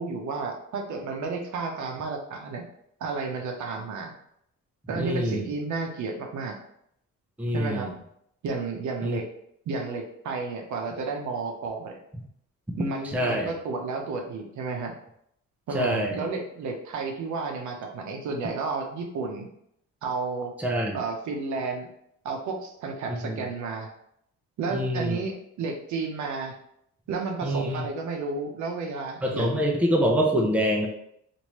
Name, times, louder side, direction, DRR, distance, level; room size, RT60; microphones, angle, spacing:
voice 1, 0.0-2.6 3.0-4.1 4.9-6.6 7.5-7.9 8.4-9.3 9.7-12.0 12.8-14.9 15.7-19.5 20.0-20.5 20.9-21.9 22.2-23.9 24.6-26.6 27.1-29.6, right 4 dB, 70° right, 2 dB, 0.7 m, -32 dB
voice 2, 5.0-5.5 7.4-7.9 9.0-9.2 13.0-13.5 15.7-16.2 20.6-21.0 23.1-23.4 24.7-25.2 27.4-27.9 29.2-30.9, equal, 5° right, 1 dB, 0.5 m, -25 dB
3.0 x 2.6 x 3.0 m, 0.72 s
cardioid pair, 105°, 30 cm